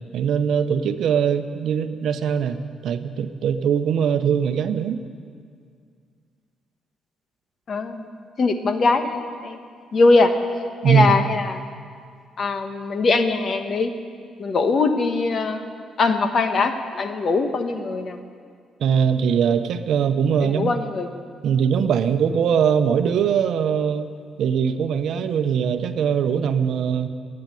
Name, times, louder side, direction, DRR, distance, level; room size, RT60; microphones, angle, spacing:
voice 1, 0.1-2.6 2.8-5.0 10.8-11.1 18.8-20.7 21.4-24.1 24.4-27.1, right 7 dB, 70° right, 10 dB, 0.7 m, -21 dB
voice 2, 7.7-8.1 8.4-9.6 9.9-10.3 10.8-11.6 12.4-13.9 14.4-15.6 16.0-18.2 20.4-21.1, left 3 dB, 50° left, 7 dB, 1.2 m, -21 dB
13.0 x 8.8 x 9.7 m, 2.2 s
cardioid pair, 90°, 0 cm